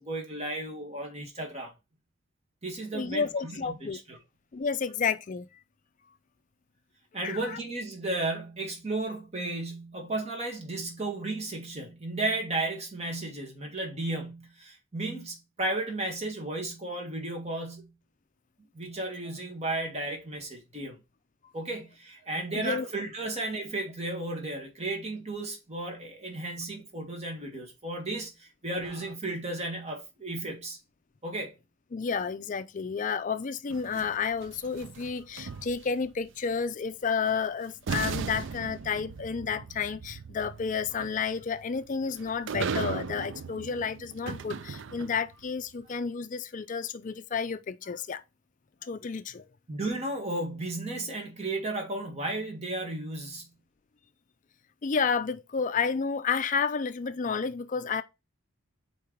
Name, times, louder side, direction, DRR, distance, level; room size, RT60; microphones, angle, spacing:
voice 1, 0.0-1.7 2.6-4.2 7.1-17.9 18.7-21.0 21.5-30.8 31.2-31.5 35.4-35.6 49.7-53.5, right 2 dB, 30° right, 1.7 m, -34 dB
voice 2, 2.9-4.0 4.5-5.5 7.2-7.6 22.5-22.9 31.9-48.2 48.8-49.5 54.8-58.0, left 5 dB, 40° left, 0.4 m, -31 dB
sound 1, 33.7-36.1 37.3-37.4 37.9-45.3, right 5 dB, 60° right, 0.4 m, -37 dB
4.6 x 4.5 x 5.0 m
head